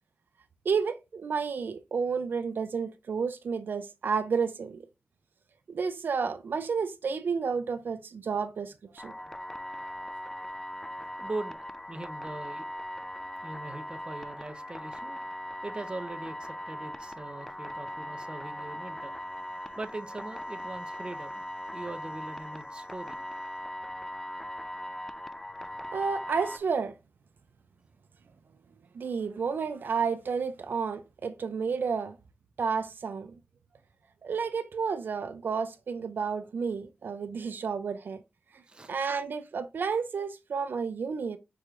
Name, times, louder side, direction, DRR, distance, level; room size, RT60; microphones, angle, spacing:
voice 1, 0.6-4.8 5.7-9.1 25.9-27.0 28.9-32.2 32.6-33.4 34.2-38.2 38.9-41.4, right 5 dB, 75° right, 0.4 m, -31 dB
sound 1, 9.0-26.6, equal, 10° left, 0.4 m, -39 dB
voice 2, 11.2-11.6 11.9-12.7 13.4-15.2 15.6-19.1 19.8-21.4 21.7-23.2 38.7-38.9, right 2 dB, 30° right, 0.7 m, -41 dB
4.8 x 4.4 x 2.4 m
wide cardioid pair, 125°, 3 cm